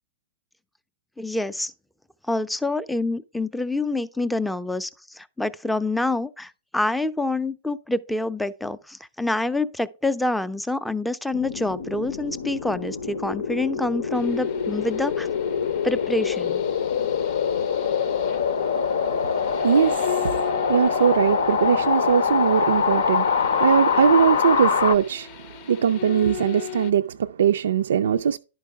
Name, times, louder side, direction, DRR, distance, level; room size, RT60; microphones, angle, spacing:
voice 1, 1.2-1.7 2.3-15.3 15.8-16.6, left 2 dB, 5° left, 0.4 m, -27 dB
sound 1, 11.3-25.0, left 6 dB, 85° left, 0.7 m, -24 dB
sound 2, 14.1-26.9, left 14 dB, 45° left, 0.6 m, -39 dB
voice 2, 19.6-25.3 25.7-28.4, right 8 dB, 80° right, 0.3 m, -21 dB
11.0 x 4.6 x 3.5 m
hypercardioid pair, 130°, 0 cm